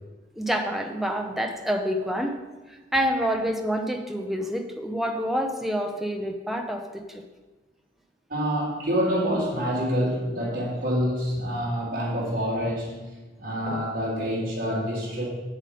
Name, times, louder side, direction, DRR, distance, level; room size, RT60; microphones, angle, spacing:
voice 1, 0.4-2.3 2.7-7.2, equal, ahead, 3 dB, 0.7 m, -27 dB
voice 2, 8.3-13.1 13.4-15.3, equal, 50° right, -5 dB, 3.6 m, -27 dB
8.2 x 7.5 x 5.1 m, 1.2 s
head